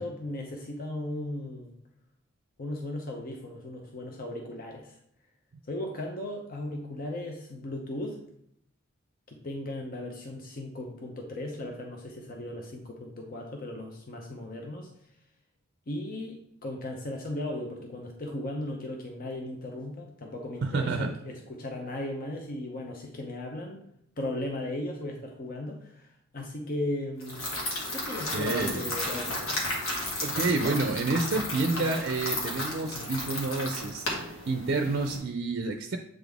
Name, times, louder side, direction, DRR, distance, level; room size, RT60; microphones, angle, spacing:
voice 1, 0.0-1.7 2.6-5.0 5.7-8.2 9.3-14.9 15.9-23.8 24.2-27.4 27.9-29.7, left 1 dB, 45° left, 1 dB, 0.7 m, -36 dB
voice 2, 20.6-21.1 28.3-28.9 30.2-36.0, right 3 dB, 55° right, 5 dB, 0.5 m, -29 dB
sound 1, 27.2-35.2, left 1 dB, 85° left, 1.7 m, -33 dB
7.8 x 3.9 x 3.5 m, 0.72 s
head